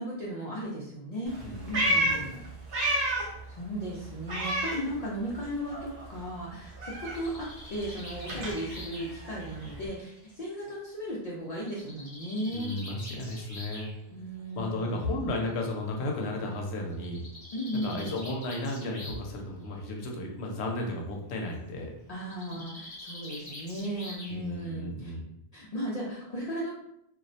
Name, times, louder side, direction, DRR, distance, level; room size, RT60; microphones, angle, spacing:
voice 1, 0.0-2.4 3.2-12.7 14.1-15.2 17.5-18.2 22.1-25.1 25.5-26.7, equal, 55° left, -5 dB, 0.4 m, -36 dB
Meow, 1.3-3.4 3.7-5.4 5.7-9.9, right 1 dB, 60° right, 0.8 m, -32 dB
voice 2, 1.4-2.3 12.5-13.9 14.5-17.2 17.7-21.9 24.3-25.2, left 1 dB, 85° left, 1 dB, 0.8 m, -34 dB
Bird, 6.7-10.5 11.6-13.9 15.0-15.1 15.4-15.5 15.8-15.9 16.9-19.3 19.6-20.1 22.2-24.6, left 1 dB, 25° left, 0.8 m, -46 dB
2.3 x 2.0 x 2.6 m, 0.78 s
omnidirectional pair, 1.1 m